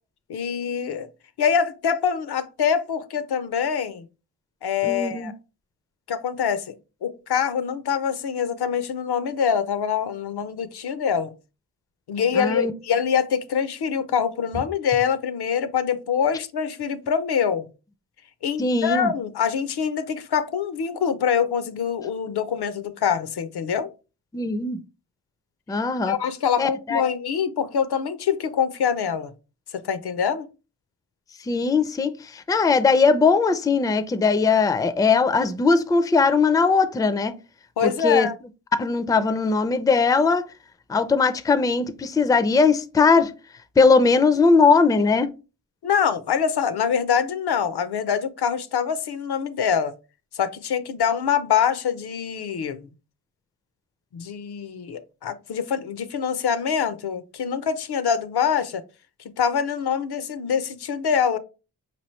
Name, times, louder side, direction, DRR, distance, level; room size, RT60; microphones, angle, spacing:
voice 1, 0.3-1.1 1.4-4.1 4.6-5.3 6.1-6.7 7.0-11.3 12.1-17.7 18.4-23.9 26.1-29.3 29.8-30.5 37.8-38.3 45.8-49.9 50.3-52.9 54.1-58.8 59.4-61.4, left 7 dB, 75° left, 0.6 m, -24 dB
voice 2, 4.8-5.3 12.4-12.7 18.6-19.1 24.3-24.8 25.7-26.1 26.6-27.0 31.5-37.3 37.8-38.3 38.8-40.4 40.9-43.3 43.8-45.3, left 4 dB, 10° left, 0.4 m, -19 dB
5.0 x 3.0 x 3.1 m
cardioid pair, 75°, 40 cm